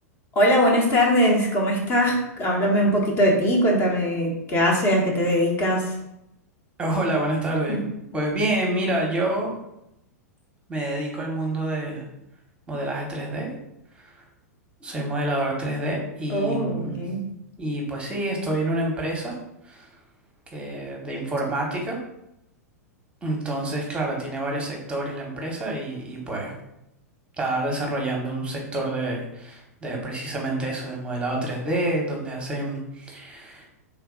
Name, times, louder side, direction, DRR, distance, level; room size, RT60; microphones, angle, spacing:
voice 1, 0.3-5.9 7.7-7.8 16.3-17.2, equal, 30° left, -1 dB, 1.0 m, -21 dB
voice 2, 6.8-9.5 10.7-12.0 12.7-13.5 14.8-17.1 17.6-19.4 19.6-19.9 20.5-22.0 23.2-26.6 27.4-33.7, right 1 dB, 10° right, 0 dB, 1.0 m, -28 dB
3.4 x 2.8 x 3.7 m, 0.83 s
figure-of-eight pair, 100°, 9 cm